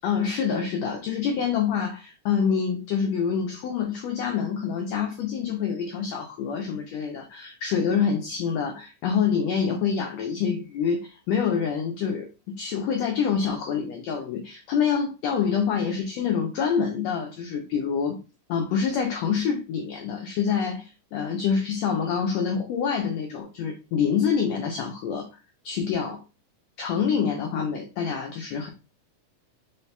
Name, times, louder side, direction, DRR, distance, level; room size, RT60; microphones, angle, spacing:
voice 1, 0.0-18.2 18.5-25.3 25.6-26.2 26.8-28.7, left 6 dB, 90° left, 1.5 m, -26 dB
5.6 x 3.2 x 2.2 m
omnidirectional pair, 3.7 m